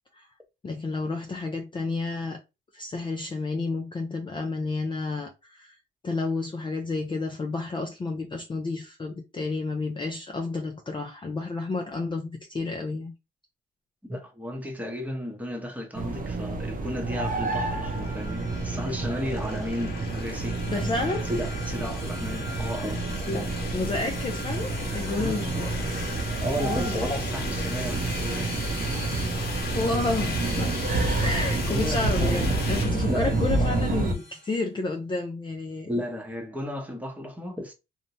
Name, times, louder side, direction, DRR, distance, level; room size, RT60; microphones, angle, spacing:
voice 1, 0.6-2.4 2.7-5.8 6.0-13.1 20.7-21.3 21.8-22.0 23.3-25.8 26.6-27.2 29.7-30.8 31.2-35.9, left 3 dB, 25° left, 0.4 m, -31 dB
voice 2, 14.0-20.6 21.2-23.0 25.2-25.6 26.4-28.6 31.5-32.2 33.1-33.3 35.9-37.7, equal, 5° right, 0.8 m, -34 dB
sound 1, 15.9-34.1, right 2 dB, 45° right, 0.6 m, -29 dB
sound 2, 17.7-34.5, left 4 dB, 55° left, 0.8 m, -38 dB
2.6 x 2.1 x 2.9 m
cardioid pair, 90°, 20 cm